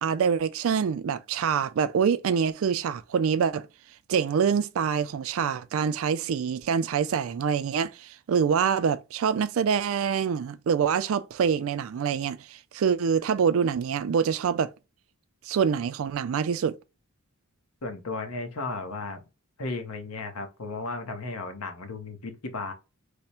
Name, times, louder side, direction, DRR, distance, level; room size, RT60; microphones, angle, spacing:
voice 1, 0.0-3.7 4.1-12.4 12.7-14.7 15.5-16.8, right 7 dB, 70° right, 0.3 m, -25 dB
voice 2, 17.8-19.2 19.6-22.7, left 3 dB, 90° left, 0.9 m, -34 dB
3.4 x 2.1 x 4.2 m
head